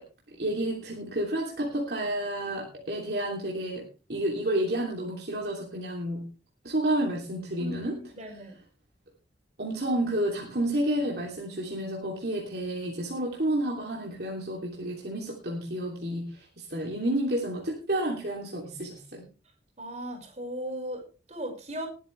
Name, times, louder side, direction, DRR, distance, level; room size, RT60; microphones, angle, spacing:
voice 1, 0.4-6.3 6.6-8.0 9.6-19.2, right 1 dB, 60° right, -2 dB, 3.1 m, -30 dB
voice 2, 7.6-8.5 19.8-21.9, equal, 40° right, 2 dB, 5.9 m, -37 dB
20.0 x 10.0 x 3.4 m, 0.34 s
head